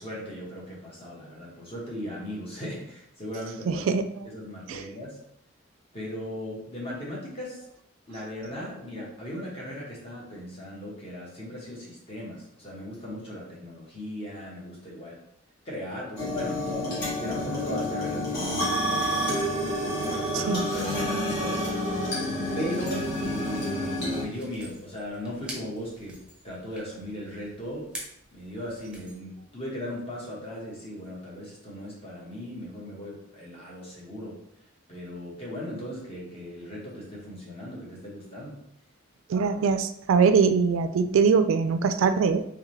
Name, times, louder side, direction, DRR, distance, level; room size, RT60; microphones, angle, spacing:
voice 1, 0.0-3.8 4.2-5.2 5.9-7.6 8.1-15.2 15.6-21.6 22.5-27.9 28.3-34.4 34.9-38.6, equal, 30° left, -5 dB, 1.2 m, -38 dB
voice 2, 3.7-4.1 4.7-4.8 20.3-20.6 39.3-42.4, right 5 dB, 75° right, 10 dB, 0.3 m, -22 dB
sound 1, 16.2-24.2, equal, 50° left, 1.4 m, -29 dB
sound 2, 24.1-29.2, right 1 dB, 5° right, 0.8 m, -46 dB
3.6 x 3.3 x 3.2 m, 0.72 s
head